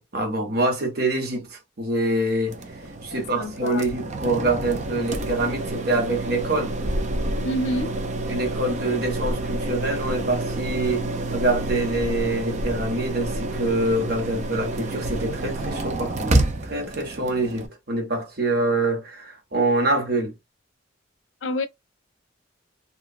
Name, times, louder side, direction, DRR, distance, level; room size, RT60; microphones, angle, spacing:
voice 1, 0.0-2.6 3.0-6.7 8.3-16.4 16.7-20.3, right 2 dB, 55° right, 1.2 m, -25 dB
sound 1, 2.5-17.7, right 2 dB, 40° right, 0.5 m, -28 dB
voice 2, 3.1-3.9 7.4-7.9 21.4-21.7, left 1 dB, 90° left, 0.5 m, -28 dB
3.0 x 2.4 x 2.4 m
head